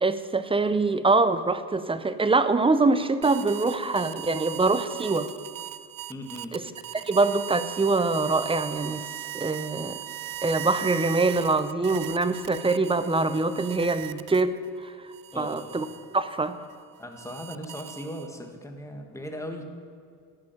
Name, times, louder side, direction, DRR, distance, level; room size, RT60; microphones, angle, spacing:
voice 1, 0.0-5.3 6.5-6.6 6.9-9.1 9.3-10.0 10.4-14.9 15.4-15.9 16.1-16.6, right 3 dB, 15° right, 12 dB, 0.6 m, -24 dB
sound 1, 3.2-14.7 15.1-18.5, right 13 dB, 55° right, 0.6 m, -39 dB
voice 2, 6.1-6.6 15.3-15.7 17.0-19.6, equal, 5° left, 4 dB, 1.7 m, -38 dB
13.5 x 6.1 x 9.1 m, 2.2 s
cardioid pair, 100°, 40 cm